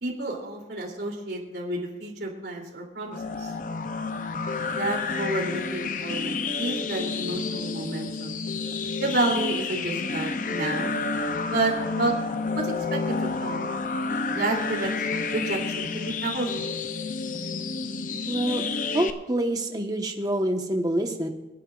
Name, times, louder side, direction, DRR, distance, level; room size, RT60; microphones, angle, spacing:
voice 1, 0.0-3.5 4.6-8.4 9.0-11.0 11.5-12.1 12.5-13.7 14.3-16.7, right 2 dB, 70° right, -1 dB, 3.0 m, -30 dB
sound 1, 3.1-19.1, left 4 dB, 45° left, 0.6 m, -30 dB
voice 2, 18.3-18.6 18.9-21.3, right 1 dB, 20° right, 3 dB, 1.1 m, -26 dB
27.5 x 9.8 x 2.5 m, 1.1 s
head